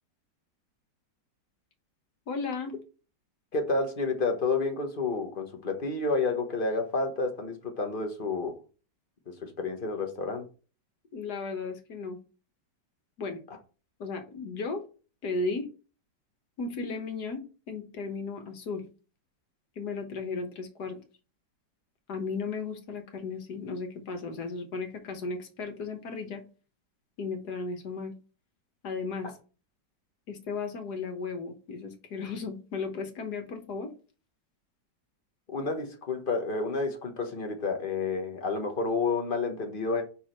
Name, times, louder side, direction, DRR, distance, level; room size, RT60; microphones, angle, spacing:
voice 1, 2.3-2.8 11.1-12.2 13.2-13.4 14.0-14.8 15.2-15.7 16.6-18.9 19.8-21.0 22.1-26.4 27.2-28.2 28.8-29.4 30.3-33.9, left 4 dB, 65° left, 1.7 m, -35 dB
voice 2, 3.5-8.5 9.4-10.5 35.5-40.0, left 3 dB, 35° left, 1.1 m, -30 dB
5.4 x 4.7 x 4.5 m
omnidirectional pair, 1.9 m